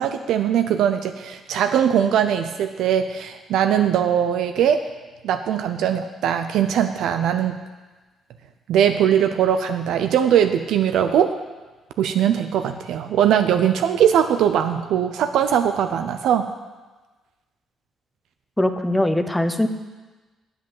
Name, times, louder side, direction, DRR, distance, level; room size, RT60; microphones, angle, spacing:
voice 1, 0.0-4.9 5.2-7.6 8.7-11.3 12.0-16.5, right 9 dB, 80° right, 7 dB, 0.5 m, -20 dB
voice 2, 18.6-19.7, left 1 dB, 10° left, 8 dB, 0.8 m, -21 dB
8.1 x 7.8 x 7.3 m, 1.2 s
cardioid pair, 90°, 0 cm